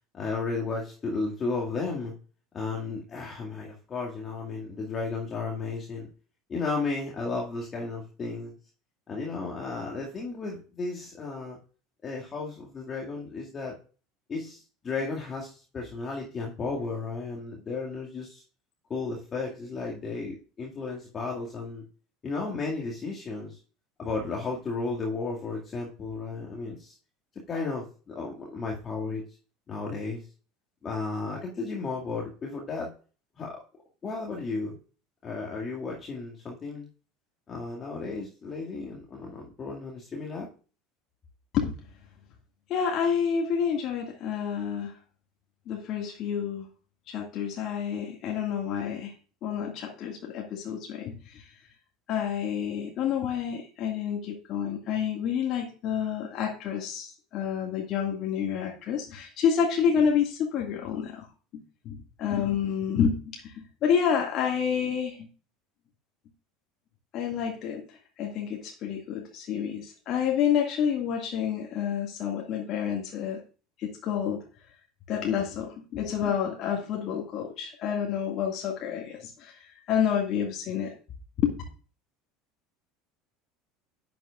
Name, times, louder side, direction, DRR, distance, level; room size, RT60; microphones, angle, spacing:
voice 1, 0.1-2.1 2.5-6.1 6.5-8.5 9.1-11.6 12.0-13.8 14.3-18.4 18.9-21.9 22.2-23.6 24.0-26.9 27.5-29.2 29.7-30.2 30.8-32.9 33.4-33.6 34.0-34.7 35.2-36.9 37.5-40.5, left 3 dB, 30° left, -2 dB, 2.1 m, -34 dB
voice 2, 42.7-44.9 45.7-46.7 47.1-49.1 49.4-51.5 52.1-61.3 61.5-65.3 67.1-73.4 73.8-74.4 75.1-80.9 81.4-81.5, left 8 dB, 45° left, 1 dB, 2.0 m, -29 dB
11.0 x 7.9 x 2.5 m, 0.37 s
figure-of-eight pair, 70°, 0 cm